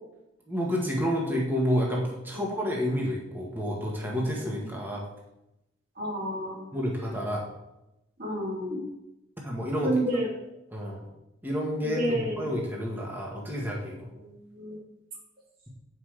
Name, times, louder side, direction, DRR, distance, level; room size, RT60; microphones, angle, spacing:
voice 1, 0.5-5.0 6.7-7.4 9.4-9.9 10.7-11.1 11.4-14.1, equal, 10° right, -3 dB, 1.5 m, -29 dB
voice 2, 2.3-2.8 6.0-6.8 8.2-8.9 9.8-10.3 11.8-12.5 14.1-14.8, equal, 50° right, -5 dB, 2.8 m, -31 dB
8.1 x 5.9 x 4.9 m, 0.89 s
head